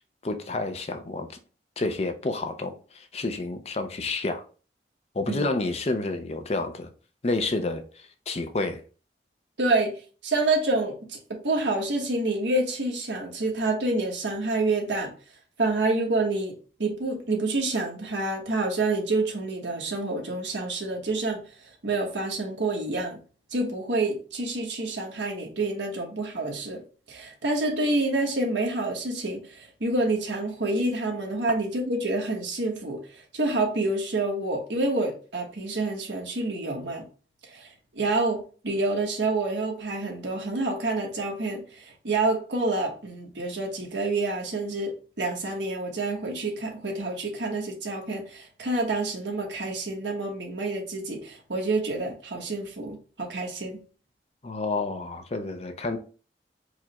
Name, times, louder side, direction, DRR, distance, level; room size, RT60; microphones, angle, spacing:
voice 1, 0.2-1.3 1.8-4.4 5.1-6.9 7.2-8.8 54.4-56.0, left 2 dB, 35° left, 0.5 m, -29 dB
voice 2, 9.6-9.9 10.2-15.1 15.6-16.5 16.8-21.4 21.8-23.2 23.5-26.8 27.1-33.0 33.3-37.0 37.5-53.8, right 2 dB, 90° right, 1.3 m, -28 dB
4.8 x 2.3 x 4.1 m
head